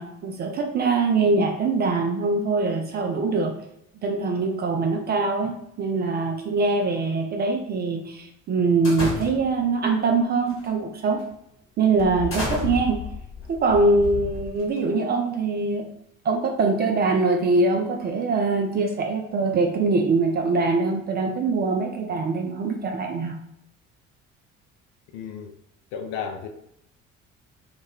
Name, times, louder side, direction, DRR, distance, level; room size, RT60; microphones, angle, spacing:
voice 1, 0.0-3.5 4.0-11.2 11.8-13.0 13.5-15.9 16.2-23.4, right 3 dB, 25° right, 2 dB, 0.4 m, -23 dB
sound 1, 8.8-9.7 10.5-10.7 11.2-11.3 12.0-14.9, left 4 dB, 35° left, 1.1 m, -32 dB
voice 2, 25.1-25.5 25.9-26.5, left 7 dB, 50° left, 5 dB, 0.5 m, -33 dB
2.3 x 2.1 x 3.3 m, 0.78 s
figure-of-eight pair, 50°, 39 cm